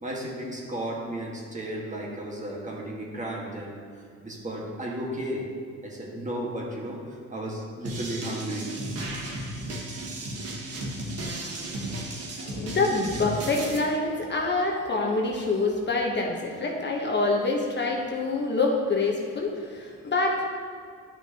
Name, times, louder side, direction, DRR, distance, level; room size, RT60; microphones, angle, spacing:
voice 1, 0.0-3.8 4.2-5.5 5.8-7.0 7.3-8.7, right 1 dB, 25° right, -3 dB, 1.7 m, -34 dB
sound 1, 7.8-13.8, right 1 dB, 50° right, 1.5 m, -34 dB
voice 2, 12.4-20.5, left 3 dB, 35° left, 0 dB, 1.1 m, -26 dB
10.5 x 6.0 x 2.9 m, 2.2 s
cardioid pair, 90°, 30 cm